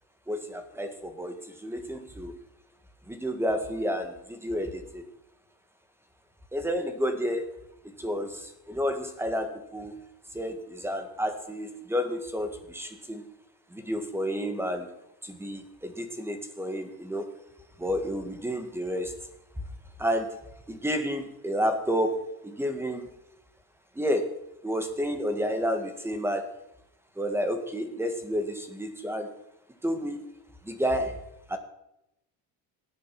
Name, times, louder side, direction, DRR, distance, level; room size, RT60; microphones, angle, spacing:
voice 1, 0.3-2.3 3.1-5.0 6.5-7.5 8.0-10.0 10.3-13.2 13.7-14.9 15.2-17.4 17.8-19.1 20.0-20.4 20.7-23.1 24.0-24.3 24.6-26.5 27.2-29.3 29.8-30.3 30.6-31.2 31.5-31.6, equal, 5° right, 7 dB, 1.8 m, -30 dB
18.0 x 11.0 x 6.0 m, 0.83 s
cardioid pair, 150°, 43 cm